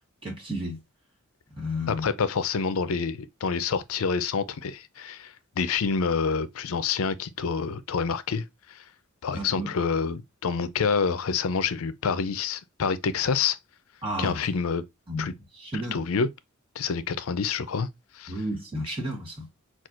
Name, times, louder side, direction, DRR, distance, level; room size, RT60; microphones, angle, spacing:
voice 1, 0.2-0.8 1.6-2.1 9.3-9.7 14.0-14.4 15.1-16.0 18.3-19.5, equal, 25° right, 1.5 m, -32 dB
voice 2, 1.9-8.8 9.2-13.6 14.2-14.8 15.2-15.3 15.9-16.3 16.8-17.9 18.1-18.3, left 5 dB, 70° left, 0.5 m, -27 dB
5.9 x 2.4 x 2.4 m
head